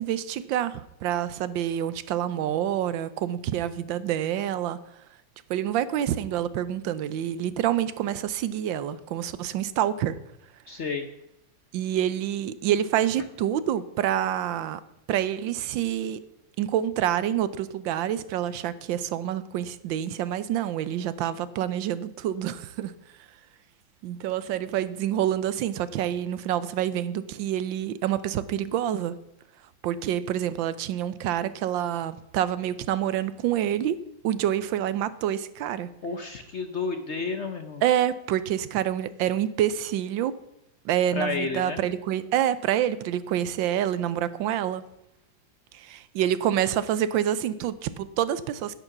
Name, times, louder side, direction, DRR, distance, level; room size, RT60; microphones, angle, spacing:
voice 1, 0.0-4.8 5.5-10.1 11.7-14.8 15.1-16.2 16.6-22.9 24.0-29.1 29.8-34.0 34.2-35.9 37.8-40.3 40.8-44.8 45.7-48.8, right 11 dB, 85° right, 15 dB, 1.4 m, -27 dB
voice 2, 10.7-11.1 36.0-37.8 41.1-41.8, left 4 dB, 55° left, 7 dB, 0.8 m, -31 dB
11.0 x 9.1 x 5.9 m, 0.80 s
omnidirectional pair, 2.0 m